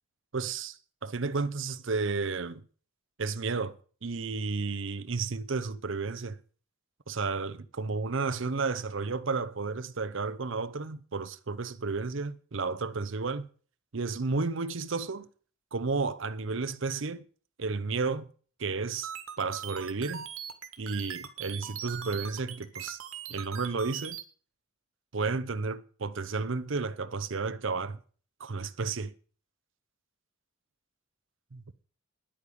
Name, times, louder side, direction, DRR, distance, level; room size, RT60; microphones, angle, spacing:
voice 1, 0.3-2.6 3.2-3.7 4.0-6.4 7.1-13.5 13.9-15.3 15.7-17.2 17.6-18.3 18.6-19.1 19.4-20.2 20.8-23.0 23.3-24.2 25.1-28.0 28.4-29.1 31.5-31.6, right 4 dB, 60° right, 0.7 m, -32 dB
sound 1, 19.0-24.2, right 8 dB, 80° right, 1.8 m, -40 dB
10.0 x 8.7 x 8.5 m
head